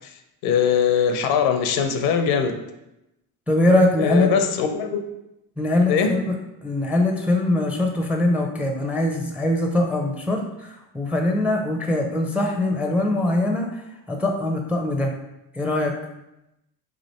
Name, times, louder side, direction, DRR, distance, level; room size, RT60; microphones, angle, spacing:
voice 1, 0.4-2.5 4.0-5.1 5.9-6.1, left 7 dB, 75° left, 6 dB, 0.7 m, -21 dB
voice 2, 3.5-4.3 5.6-6.3 6.6-13.8 14.1-15.1 15.5-15.9, left 1 dB, 5° right, 2 dB, 0.4 m, -22 dB
3.3 x 2.5 x 4.1 m, 0.91 s
supercardioid pair, 70°, 50 cm